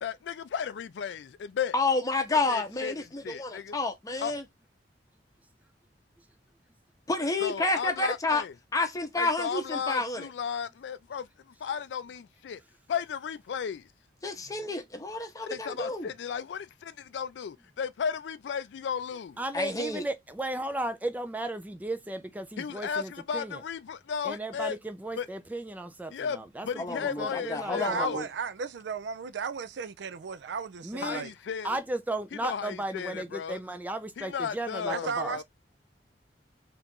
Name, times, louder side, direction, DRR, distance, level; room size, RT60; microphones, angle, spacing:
voice 1, 0.0-1.7 2.5-2.9 3.2-3.8 4.2-4.3 7.4-8.5 9.2-11.3 11.6-12.6 12.9-13.9 15.4-19.4 22.6-24.8 25.2-25.3 26.1-28.2 31.0-31.8 32.4-33.6 34.2-35.4, left 7 dB, 75° left, 0.3 m, -34 dB
voice 2, 1.7-4.4 7.1-8.4 8.7-10.3 14.2-16.1 19.5-20.0 26.8-28.3, left 3 dB, 20° left, 0.7 m, -30 dB
voice 3, 19.4-23.6 24.2-28.2 30.8-31.2 31.6-35.4, right 1 dB, 10° right, 0.3 m, -35 dB
voice 4, 27.8-31.3 34.9-35.4, right 5 dB, 75° right, 0.4 m, -35 dB
2.9 x 2.5 x 3.5 m
head